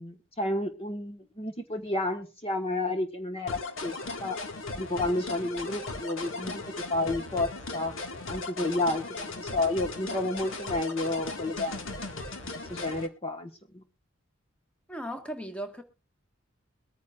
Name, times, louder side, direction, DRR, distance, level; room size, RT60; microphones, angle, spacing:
voice 1, 0.0-4.4 4.8-6.6 6.9-7.9 8.3-12.0 12.4-13.8, left 2 dB, 30° left, 1.3 m, -31 dB
sound 1, 3.5-13.1, left 3 dB, 85° left, 1.8 m, -37 dB
voice 2, 14.9-15.8, equal, 5° left, 1.5 m, -36 dB
22.5 x 9.4 x 2.4 m
head